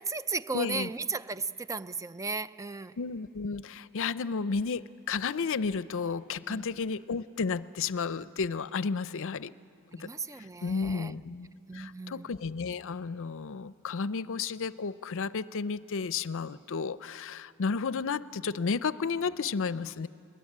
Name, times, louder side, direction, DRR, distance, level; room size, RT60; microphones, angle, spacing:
voice 1, 0.0-3.0 6.5-6.6 9.9-11.2 11.7-12.3, right 4 dB, 15° right, 14 dB, 0.5 m, -35 dB
voice 2, 0.5-0.9 3.0-9.5 9.9-10.1 10.4-11.5 11.7-20.1, left 5 dB, 60° left, 16 dB, 0.6 m, -32 dB
22.0 x 21.0 x 10.0 m, 2.9 s
head